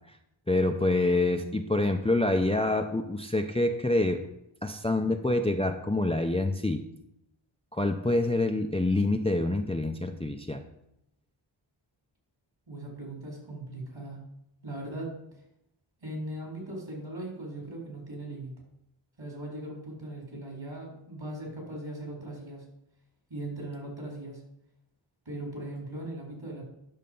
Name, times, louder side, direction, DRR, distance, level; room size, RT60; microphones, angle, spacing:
voice 1, 0.5-4.3 4.6-6.8 7.7-10.6, left 2 dB, 10° left, 5 dB, 0.6 m, -26 dB
voice 2, 12.7-14.2 14.6-15.1 16.0-18.5 19.2-22.6 23.3-24.4 25.3-26.6, right 1 dB, 60° right, -1 dB, 4.3 m, -39 dB
10.5 x 6.5 x 5.4 m, 0.83 s
wide cardioid pair, 85°, 50 cm